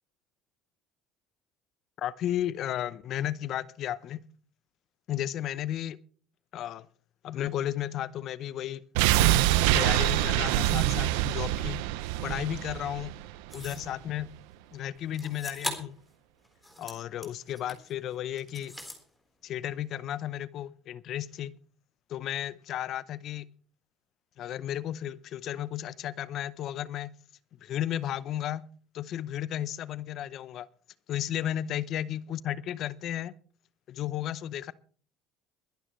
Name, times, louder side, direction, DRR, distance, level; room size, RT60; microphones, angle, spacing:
voice 1, 2.0-4.2 5.1-6.0 6.5-6.9 7.2-8.8 9.7-11.8 12.2-13.1 13.5-14.3 14.7-16.0 16.8-18.7 19.4-21.6 22.1-23.5 24.4-27.1 27.6-28.7 28.9-30.7 31.1-33.3 33.9-34.7, left 11 dB, 55° left, 0.7 m, -34 dB
sound 1, 8.9-13.9 14.2-14.3, right 14 dB, 85° right, 0.6 m, -25 dB
sound 2, 13.5-13.9 15.1-16.0 16.4-17.9 18.4-19.0, left 1 dB, 5° left, 4.0 m, -40 dB
22.5 x 11.0 x 3.2 m
supercardioid pair, 90°, 0 cm